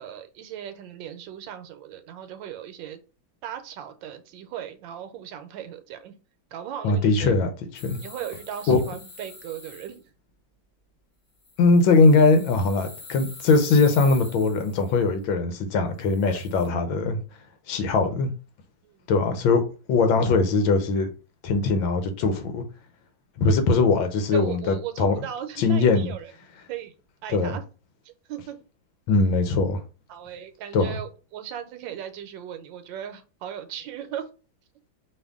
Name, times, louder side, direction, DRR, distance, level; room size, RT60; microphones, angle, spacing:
voice 1, 0.0-3.0 3.4-6.2 6.5-7.3 8.0-10.0 16.3-16.4 18.8-19.0 24.3-26.3 26.7-26.9 27.2-27.6 28.0-28.6 30.1-34.3, right 10 dB, 80° right, 1.3 m, -37 dB
voice 2, 6.8-7.5 7.7-8.0 8.7-8.8 11.6-17.2 17.7-18.3 19.1-19.6 19.9-21.1 21.4-22.6 23.4-25.1 25.6-26.1 27.3-27.6 29.1-29.8 30.7-31.0, left 3 dB, 90° left, 1.6 m, -21 dB
sound 1, 7.7-10.0 11.4-15.0 16.0-16.7, left 3 dB, 40° left, 2.0 m, -44 dB
5.3 x 2.5 x 3.6 m
omnidirectional pair, 2.1 m